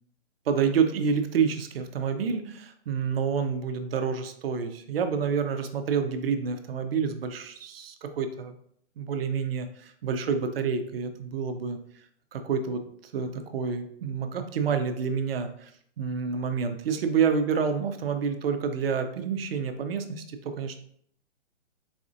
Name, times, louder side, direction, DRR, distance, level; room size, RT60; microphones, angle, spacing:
voice 1, 0.5-8.6 9.0-11.8 12.3-15.7 16.0-20.8, right 6 dB, 55° right, 8 dB, 0.5 m, -28 dB
4.1 x 2.4 x 2.5 m, 0.65 s
hypercardioid pair, 135°, 36 cm